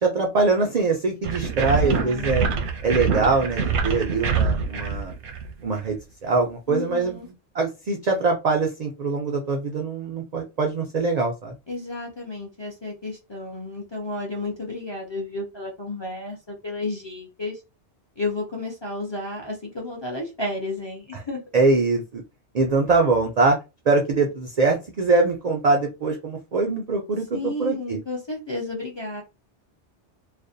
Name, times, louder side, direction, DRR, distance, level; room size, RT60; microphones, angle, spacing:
voice 1, 0.0-2.5 2.8-5.1 5.6-6.0 6.2-11.6 21.1-21.2 21.5-22.2 22.5-23.6 23.9-28.0, right 3 dB, 65° right, 2 dB, 0.4 m, -23 dB
sound 1, 1.2-5.9, right 5 dB, 80° right, 0.9 m, -25 dB
voice 2, 1.7-2.6 6.7-7.3 11.7-17.6 18.2-21.4 27.3-29.2, left 2 dB, 35° left, -2 dB, 0.5 m, -32 dB
2.4 x 2.1 x 2.5 m, 0.26 s
omnidirectional pair, 1.2 m